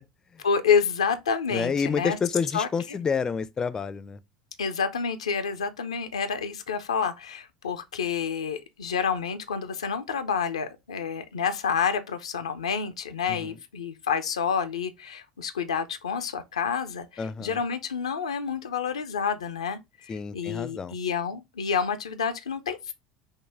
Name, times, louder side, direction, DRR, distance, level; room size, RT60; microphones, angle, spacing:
voice 1, 0.4-2.2 2.5-3.0 4.6-22.9, left 6 dB, 75° left, 0.5 m, -29 dB
voice 2, 1.5-4.2 13.3-13.5 17.2-17.6 20.1-20.9, left 6 dB, 20° left, 0.4 m, -29 dB
5.4 x 2.1 x 3.2 m
figure-of-eight pair, 70°, 3 cm